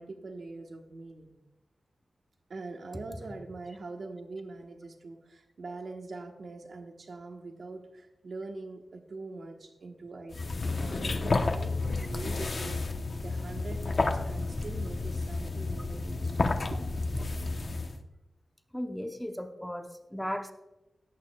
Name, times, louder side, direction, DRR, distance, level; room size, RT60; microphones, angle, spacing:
voice 1, 0.0-1.3 2.5-16.8, right 3 dB, 65° right, 3 dB, 1.2 m, -43 dB
sound 1, 10.3-18.0, left 3 dB, 50° left, 0.9 m, -31 dB
voice 2, 18.7-20.5, equal, 5° left, 6 dB, 0.8 m, -36 dB
18.0 x 8.5 x 2.3 m, 0.99 s
wide cardioid pair, 150°, 0 cm